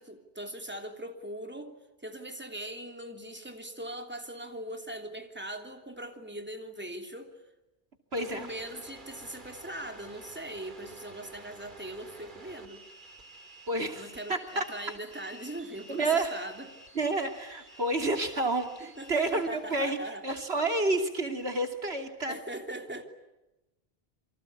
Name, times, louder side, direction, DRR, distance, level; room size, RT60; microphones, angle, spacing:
voice 1, 0.0-1.7 2.0-7.3 8.2-12.8 13.9-16.7 19.0-20.2 22.3-23.0, right 1 dB, 10° right, 5 dB, 3.0 m, -40 dB
sound 1, 8.1-19.8, right 2 dB, 50° right, 2.7 m, -51 dB
voice 2, 8.1-8.5 13.7-14.6 15.9-16.5 16.9-22.4, right 2 dB, 85° right, 6 dB, 3.2 m, -30 dB
28.5 x 24.5 x 8.6 m, 0.99 s
omnidirectional pair, 1.0 m